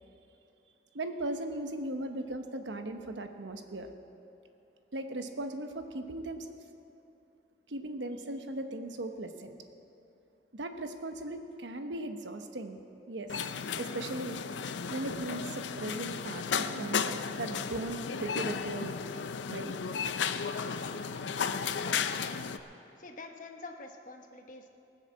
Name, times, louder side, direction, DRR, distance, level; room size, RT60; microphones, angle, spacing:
voice 1, 0.9-3.9 4.9-6.5 7.7-9.5 10.5-12.8 13.1-13.4 13.8-14.4 14.9-19.0 19.5-19.7, right 2 dB, 85° right, 6 dB, 1.0 m, -38 dB
sound 1, 13.3-22.6, left 6 dB, 90° left, 0.5 m, -34 dB
voice 2, 21.8-22.6 23.0-24.7, left 3 dB, 45° left, 4 dB, 1.0 m, -47 dB
19.0 x 6.6 x 7.4 m, 2.9 s
head